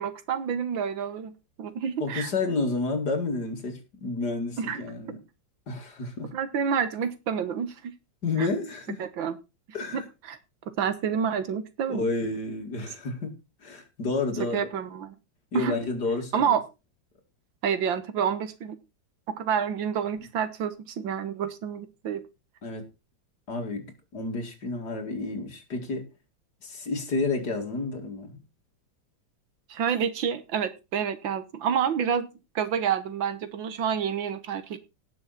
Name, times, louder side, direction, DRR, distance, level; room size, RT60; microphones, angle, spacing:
voice 1, 0.0-1.3 1.6-2.3 4.6-4.8 6.3-7.9 8.4-8.5 9.0-9.4 9.9-10.4 10.8-12.1 14.5-15.1 15.5-15.8 16.3-16.6 17.6-18.8 19.4-22.2 29.7-32.3 32.6-34.8, right 7 dB, 85° right, 1.9 m, -28 dB
voice 2, 2.0-5.2 5.7-6.3 8.2-9.0 9.7-10.1 11.9-13.3 13.6-14.7 15.5-16.6 22.6-22.9 23.5-26.1 26.6-28.4, left 3 dB, 55° left, 3.0 m, -30 dB
18.0 x 6.4 x 4.2 m
omnidirectional pair, 2.1 m